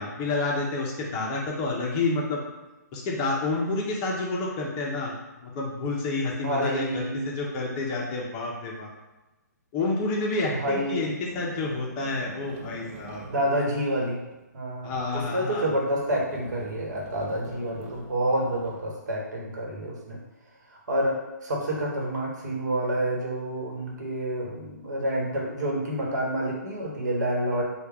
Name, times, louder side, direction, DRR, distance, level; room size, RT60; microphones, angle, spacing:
voice 1, 0.0-2.4 2.9-5.1 5.4-8.9 9.7-13.2 14.8-15.7, left 3 dB, 25° left, -3 dB, 0.5 m, -29 dB
voice 2, 6.4-7.3 10.5-11.1 13.2-14.2 14.5-20.2 20.9-27.6, right 1 dB, 70° right, -2 dB, 1.1 m, -28 dB
sound 1, 10.4-10.6 11.2-14.4 15.0-15.5 15.9-18.9, right 3 dB, 45° right, 0.6 m, -45 dB
3.3 x 2.2 x 3.4 m, 1.1 s
hypercardioid pair, 150°, 10 cm